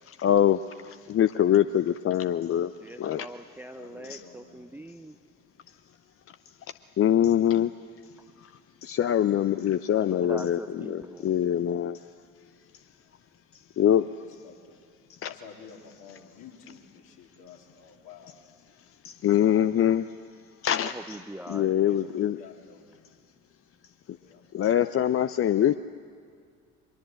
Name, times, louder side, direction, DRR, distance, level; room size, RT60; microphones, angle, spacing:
voice 1, 0.2-0.6 0.9-2.7 3.0-3.3 4.1-4.2 7.0-7.7 8.8-12.0 13.8-14.1 15.2-15.3 19.0-20.0 20.6-21.2 21.5-22.4 24.5-25.8, left 10 dB, 30° left, 12 dB, 0.6 m, -23 dB
voice 2, 2.8-5.2 10.1-11.4 20.8-22.1, right 1 dB, 5° right, 9 dB, 0.9 m, -42 dB
voice 3, 3.7-4.6 14.2-14.8 15.3-18.4 21.8-23.1 24.2-24.4, left 6 dB, 55° left, 0 dB, 3.6 m, -50 dB
23.0 x 22.5 x 7.8 m, 2.1 s
figure-of-eight pair, 55°, 45 cm